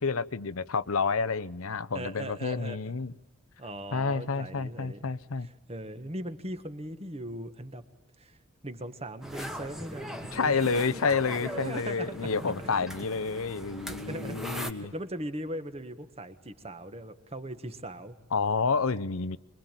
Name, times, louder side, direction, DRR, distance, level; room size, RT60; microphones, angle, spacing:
voice 1, 0.0-3.1 3.9-5.5 10.3-14.9 18.3-19.4, left 4 dB, 75° left, 17 dB, 0.8 m, -29 dB
voice 2, 1.9-3.0 3.6-5.1 5.4-7.8 8.2-8.4 8.6-11.0 11.4-12.5 13.8-18.2, right 1 dB, 30° right, 9 dB, 1.6 m, -39 dB
sound 1, 9.2-14.7, equal, ahead, 1.5 m, -40 dB
25.0 x 22.5 x 9.1 m, 1.1 s
head